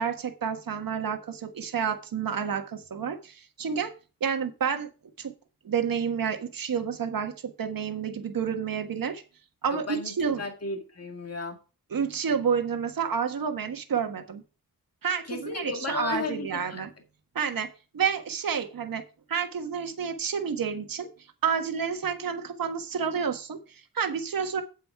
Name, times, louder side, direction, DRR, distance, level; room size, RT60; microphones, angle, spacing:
voice 1, 0.0-3.9 4.2-4.9 5.2-5.3 5.6-9.2 9.6-10.4 11.9-14.4 15.0-16.9 17.3-17.7 17.9-19.0 19.3-21.1 21.4-24.6, right 7 dB, 65° right, 1.5 m, -29 dB
voice 2, 9.7-11.6 15.3-16.8, left 3 dB, 40° left, 2.1 m, -34 dB
8.2 x 7.6 x 4.7 m
cardioid pair, 80°, 36 cm